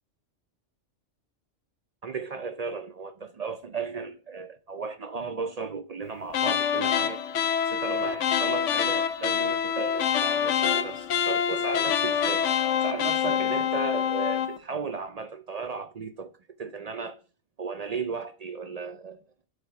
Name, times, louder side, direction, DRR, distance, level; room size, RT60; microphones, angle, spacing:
voice 1, 2.0-7.2 7.7-12.5 12.8-16.3 16.6-17.2 17.6-19.2, right 5 dB, 55° right, 0.4 m, -35 dB
sound 1, 6.3-14.6, left 8 dB, 80° left, 1.0 m, -26 dB
8.3 x 4.1 x 4.6 m
omnidirectional pair, 1.3 m